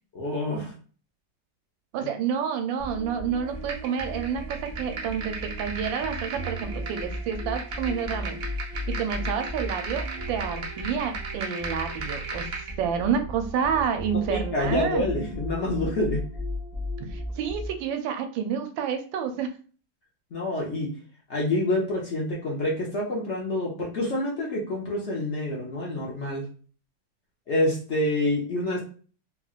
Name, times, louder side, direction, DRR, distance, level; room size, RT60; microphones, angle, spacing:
voice 1, 0.1-0.7 2.0-2.1 14.3-16.2 20.3-20.9 21.3-26.5 27.5-28.8, left 1 dB, 55° left, -3 dB, 0.8 m, -27 dB
voice 2, 1.9-8.4 8.9-12.5 12.8-15.1 17.1-19.5, right 7 dB, 85° right, 7 dB, 1.3 m, -29 dB
sound 1, 2.8-17.9, equal, 5° left, 0.8 m, -36 dB
sound 2, 3.7-12.7, right 3 dB, 55° right, 0.8 m, -37 dB
3.6 x 3.0 x 2.4 m, 0.40 s
omnidirectional pair, 2.0 m